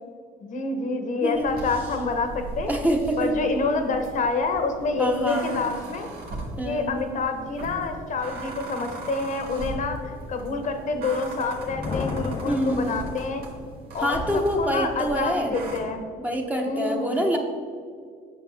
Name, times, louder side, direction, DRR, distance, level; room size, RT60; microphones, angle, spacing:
voice 1, 0.4-2.7 3.2-6.1 6.6-13.4 13.9-14.2 14.6-16.0 16.5-17.3, left 3 dB, 50° left, 6 dB, 1.0 m, -27 dB
voice 2, 1.2-1.5 2.7-3.4 5.0-5.6 6.6-7.0 12.4-12.9 14.0-15.6 16.2-17.4, equal, 10° right, 2 dB, 0.9 m, -26 dB
sound 1, 1.3-15.8, right 2 dB, 65° right, 2.0 m, -38 dB
Thunder, 11.3-13.9, left 4 dB, 30° left, 0.5 m, -34 dB
9.0 x 6.3 x 3.5 m, 2.1 s
cardioid pair, 110°, 17 cm